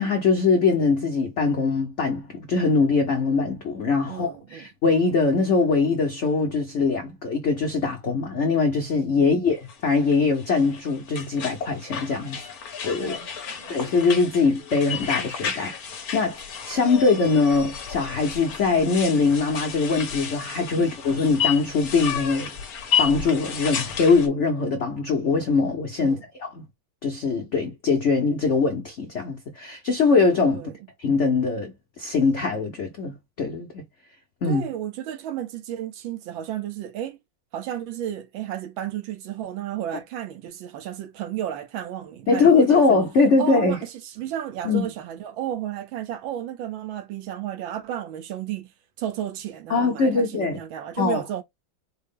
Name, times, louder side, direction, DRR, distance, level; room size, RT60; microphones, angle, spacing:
voice 1, 0.0-12.5 12.8-13.2 13.7-22.5 23.0-26.6 27.0-30.6 31.0-33.8 34.4-34.7 42.3-43.8 44.6-44.8 49.7-50.6 51.0-51.2, left 4 dB, 80° left, 0.6 m, -22 dB
voice 2, 4.1-4.6 9.1-9.3 13.0-13.8 20.8-20.9 26.0-26.2 30.5-30.7 34.4-37.2 37.5-43.0 43.4-48.7 49.0-51.4, right 11 dB, 75° right, 1.4 m, -33 dB
sound 1, 9.5-24.3, left 7 dB, 55° left, 1.2 m, -32 dB
4.6 x 2.0 x 3.5 m
omnidirectional pair, 2.2 m